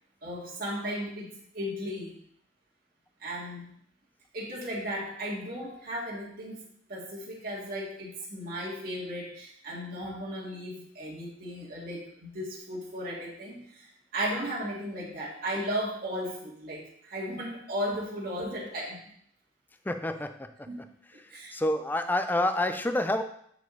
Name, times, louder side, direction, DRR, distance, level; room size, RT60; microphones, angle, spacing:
voice 1, 0.2-2.2 3.2-3.8 4.3-13.9 14.1-19.0 20.7-20.9 21.3-21.5, equal, 50° right, -6 dB, 2.0 m, -35 dB
voice 2, 19.9-20.3 21.5-23.2, left 1 dB, 10° left, 8 dB, 0.4 m, -27 dB
8.7 x 5.0 x 3.9 m, 0.68 s
head